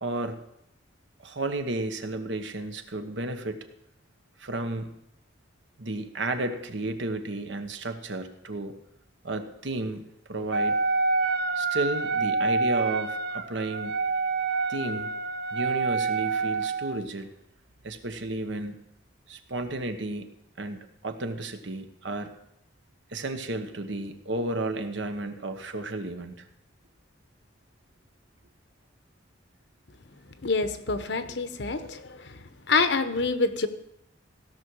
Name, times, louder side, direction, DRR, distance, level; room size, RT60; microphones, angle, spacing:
voice 1, 0.0-0.4 1.2-3.6 4.4-4.9 5.8-8.7 9.2-10.8 11.5-14.0 14.7-15.1 15.5-17.3 17.8-18.8 19.3-20.3 20.6-22.3 23.1-26.4, right 2 dB, 75° right, 7 dB, 1.2 m, -33 dB
Wind instrument woodwind instrument, 10.5-17.0, right 4 dB, 55° right, 0.8 m, -27 dB
voice 2, 30.4-32.4 32.7-33.7, left 4 dB, 65° left, 10 dB, 0.9 m, -26 dB
16.0 x 6.1 x 6.3 m, 0.76 s
head